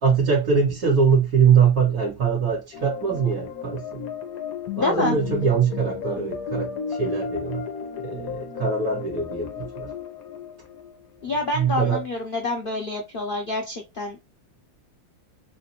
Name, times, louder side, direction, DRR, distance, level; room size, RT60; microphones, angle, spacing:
voice 1, 0.0-4.0 4.8-7.6 8.0-9.9 11.5-12.0, right 6 dB, 50° right, 1.9 m, -22 dB
sound 1, 2.7-11.3, left 6 dB, 60° left, 1.1 m, -34 dB
voice 2, 4.8-5.2 11.2-14.2, left 2 dB, 80° left, 0.4 m, -27 dB
4.2 x 2.4 x 2.8 m
omnidirectional pair, 2.0 m